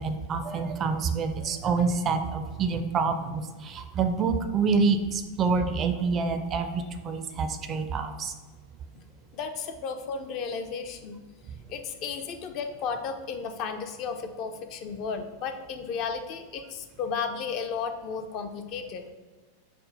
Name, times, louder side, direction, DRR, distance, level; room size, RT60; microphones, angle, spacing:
voice 1, 0.0-8.3, right 4 dB, 30° right, 8 dB, 0.4 m, -27 dB
voice 2, 9.3-11.2 11.7-19.1, left 5 dB, 40° left, 7 dB, 0.4 m, -34 dB
5.3 x 2.1 x 3.9 m, 1.3 s
figure-of-eight pair, 90°, 0 cm